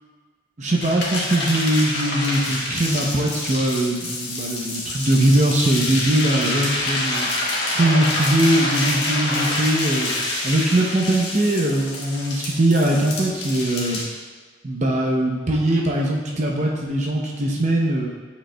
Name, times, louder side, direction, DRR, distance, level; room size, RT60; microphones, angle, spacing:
voice 1, 0.6-7.3 7.7-14.0 14.6-18.1, right 1 dB, 40° right, -1 dB, 0.6 m, -21 dB
sound 1, 0.8-14.0, left 2 dB, 60° left, 1.6 m, -27 dB
8.7 x 5.2 x 2.2 m, 1.4 s
head